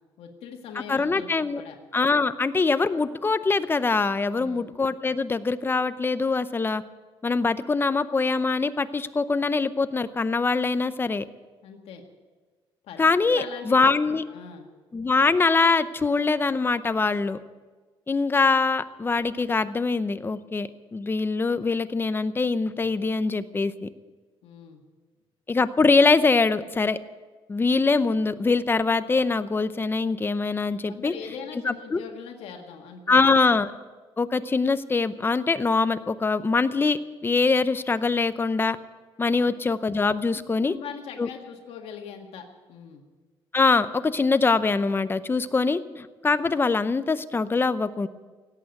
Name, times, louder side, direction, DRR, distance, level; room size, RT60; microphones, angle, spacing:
voice 1, 0.2-1.3 1.5-1.8 4.3-4.7 11.6-12.0 12.8-14.7 24.4-24.8 30.9-33.3 39.4-39.6 40.3-43.0, left 7 dB, 85° left, 3 dB, 1.9 m, -41 dB
voice 2, 0.9-1.6 1.9-6.8 7.2-11.2 13.0-14.2 14.9-17.4 18.1-23.9 25.5-27.0 27.5-31.1 31.7-32.0 33.1-33.7 34.2-38.8 39.2-40.7 41.2-41.3 43.5-48.1, left 4 dB, 20° left, 13 dB, 0.7 m, -23 dB
17.5 x 8.7 x 9.5 m, 1.4 s
cardioid pair, 125°, 10 cm